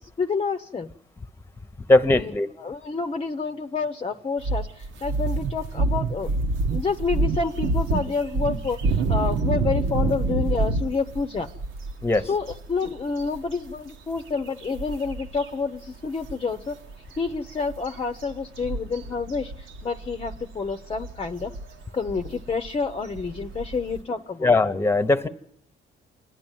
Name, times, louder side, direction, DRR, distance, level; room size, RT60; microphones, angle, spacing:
voice 1, 0.2-0.9 2.1-2.3 2.6-6.3 6.7-11.5 12.3-16.8 17.2-21.6 21.9-24.5, left 4 dB, 30° left, 7 dB, 0.8 m, -29 dB
voice 2, 1.9-2.5 12.0-12.3 24.4-25.3, left 2 dB, 10° left, 12 dB, 1.1 m, -19 dB
sound 1, 4.4-15.5 15.7-15.9 16.2-24.0, right 3 dB, 80° right, 1.3 m, -28 dB
27.0 x 11.0 x 9.1 m, 0.76 s
cardioid pair, 90°, 20 cm